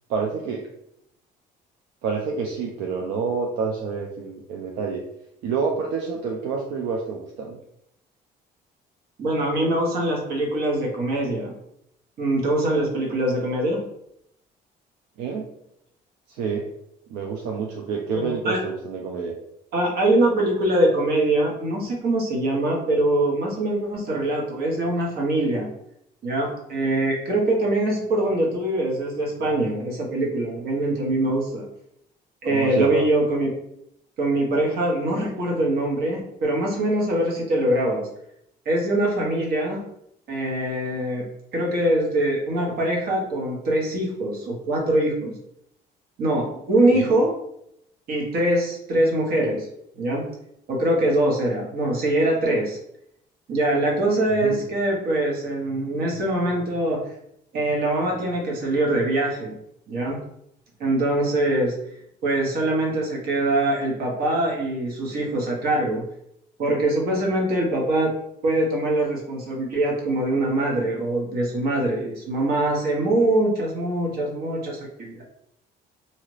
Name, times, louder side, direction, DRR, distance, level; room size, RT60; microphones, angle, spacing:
voice 1, 0.1-0.6 2.0-5.0 5.4-7.6 15.2-15.5 16.3-16.7 17.1-19.4 32.5-33.0 46.9-47.1 54.4-54.6, right 5 dB, 90° right, 0 dB, 0.5 m, -28 dB
voice 2, 9.2-11.5 12.2-13.8 18.1-18.6 19.7-25.7 26.2-31.7 32.4-33.5 34.2-38.1 38.6-39.9 40.3-41.3 41.5-45.3 46.2-47.4 48.1-49.7 50.0-50.3 50.7-52.8 53.5-57.0 57.5-59.6 59.9-60.2 60.8-61.8 62.2-66.0 66.6-68.1 68.4-75.2, right 1 dB, 65° right, -1 dB, 1.1 m, -23 dB
2.8 x 2.4 x 3.2 m, 0.76 s
cardioid pair, 110°, 17 cm